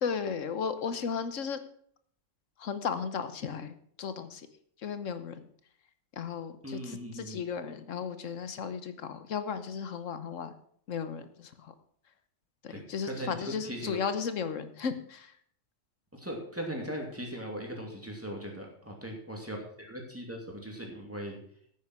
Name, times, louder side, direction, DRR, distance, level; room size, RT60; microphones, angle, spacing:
voice 1, 0.0-1.6 2.6-4.4 4.8-5.3 6.2-10.5 10.9-11.7 12.6-15.3, left 6 dB, 80° left, 11 dB, 1.4 m, -35 dB
voice 2, 6.6-7.4 12.7-14.0 16.1-21.4, equal, 10° right, 0 dB, 2.6 m, -39 dB
9.5 x 9.0 x 6.1 m, 0.62 s
omnidirectional pair, 1.3 m